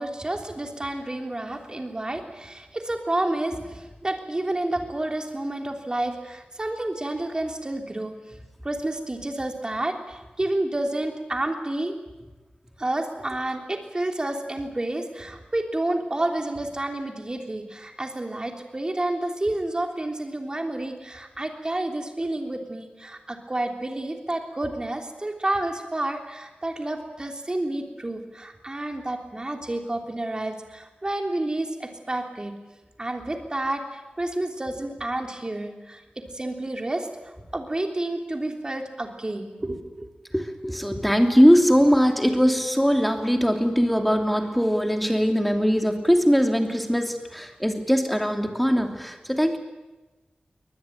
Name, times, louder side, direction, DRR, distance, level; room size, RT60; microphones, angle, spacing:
voice 1, 0.0-8.1 8.6-11.9 12.8-32.5 33.0-37.1 37.5-40.1, right 1 dB, 25° right, 3 dB, 3.4 m, -30 dB
voice 2, 40.3-49.6, equal, ahead, 4 dB, 2.9 m, -21 dB
23.5 x 20.0 x 9.2 m, 1.1 s
wide cardioid pair, 95°, 3 cm